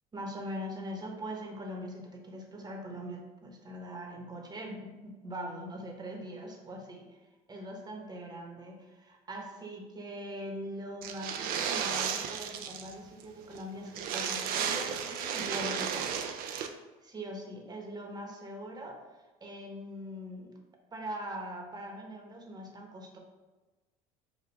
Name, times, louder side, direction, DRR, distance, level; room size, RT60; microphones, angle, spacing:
voice 1, 0.1-16.2 17.0-19.0 19.4-20.6 20.9-23.2, equal, 25° right, 1 dB, 1.0 m, -42 dB
sound 1, 11.0-12.9 13.2-13.3 13.5-13.6 13.9-16.7, right 7 dB, 60° right, 0.5 m, -33 dB
5.2 x 2.2 x 4.6 m, 1.2 s
hypercardioid pair, 80°, 17 cm